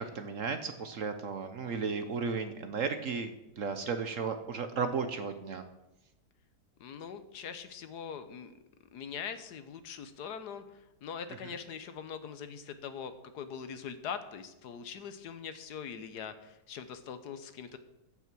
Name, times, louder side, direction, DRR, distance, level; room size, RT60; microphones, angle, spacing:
voice 1, 0.0-5.6, right 5 dB, 55° right, 8 dB, 1.0 m, -34 dB
voice 2, 6.8-8.5 8.9-17.8, left 7 dB, 70° left, 10 dB, 1.4 m, -42 dB
14.0 x 6.1 x 6.1 m, 0.91 s
omnidirectional pair, 1.9 m